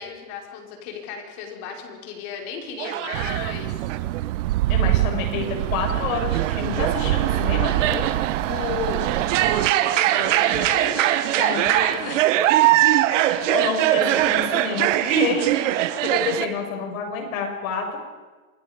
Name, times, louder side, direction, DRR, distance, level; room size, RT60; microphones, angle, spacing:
voice 1, 0.0-3.9 8.5-12.3, left 6 dB, 45° left, 1 dB, 5.4 m, -34 dB
sound 1, 2.8-3.5 3.8-4.2 5.5-16.5, right 14 dB, 60° right, 1.5 m, -22 dB
sound 2, 3.1-9.7, right 16 dB, 80° right, 0.6 m, -25 dB
voice 2, 4.7-8.0 10.2-10.3 11.4-11.6 13.2-18.0, left 5 dB, 70° left, 2 dB, 7.0 m, -28 dB
28.0 x 21.5 x 5.3 m, 1.3 s
supercardioid pair, 155°, 42 cm